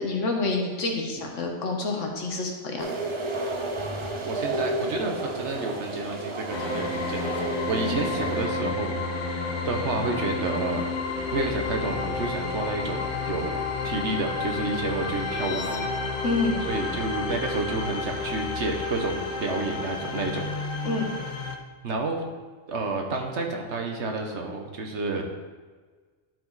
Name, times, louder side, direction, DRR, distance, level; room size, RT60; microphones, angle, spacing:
voice 1, 0.0-3.0 16.2-16.6 20.8-21.1, left 3 dB, 85° left, 1 dB, 1.6 m, -28 dB
sound 1, 2.8-8.5, right 2 dB, 30° right, 0.7 m, -32 dB
voice 2, 4.2-8.9 9.3-10.8 11.3-13.6 13.8-15.7 16.7-20.5 21.8-22.2 22.7-25.2, right 3 dB, 70° right, 2 dB, 1.3 m, -30 dB
sound 2, 6.5-21.6, left 3 dB, 45° left, 0.8 m, -31 dB
11.5 x 4.9 x 4.1 m, 1.4 s
omnidirectional pair, 1.2 m